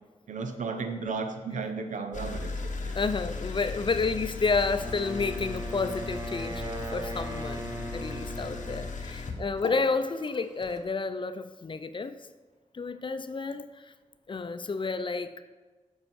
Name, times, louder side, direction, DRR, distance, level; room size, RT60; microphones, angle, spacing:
voice 1, 0.3-3.0 8.1-8.2, right 4 dB, 90° right, 7 dB, 0.7 m, -34 dB
sound 1, 2.1-10.8, left 3 dB, 90° left, 0.8 m, -37 dB
voice 2, 2.9-6.6 6.9-12.2 12.7-13.9 14.3-15.4, left 4 dB, 40° left, 11 dB, 0.5 m, -30 dB
Wind instrument woodwind instrument, 4.8-9.0, right 1 dB, 30° right, 0.9 m, -38 dB
7.7 x 5.5 x 4.7 m, 1.3 s
cardioid pair, 60°, 13 cm